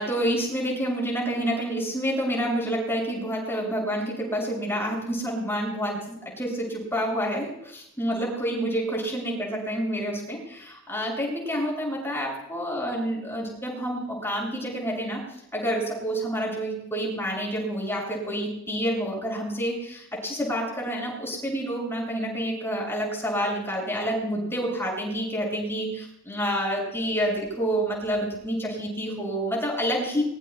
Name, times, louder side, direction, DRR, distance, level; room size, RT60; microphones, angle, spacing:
voice 1, 0.0-15.2 15.5-30.2, equal, 10° left, -2 dB, 7.6 m, -28 dB
25.5 x 22.5 x 2.4 m, 0.75 s
head